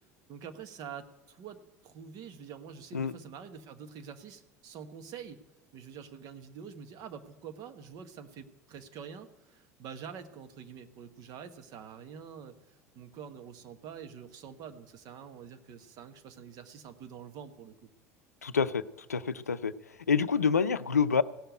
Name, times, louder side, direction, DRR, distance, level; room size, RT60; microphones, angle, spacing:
voice 1, 0.3-5.4 5.7-17.9, right 7 dB, 50° right, 8 dB, 1.3 m, -46 dB
voice 2, 18.4-18.8 19.1-19.7 20.1-21.2, left 6 dB, 90° left, 15 dB, 0.5 m, -27 dB
16.5 x 6.9 x 9.1 m, 1.1 s
figure-of-eight pair, 70°, 8 cm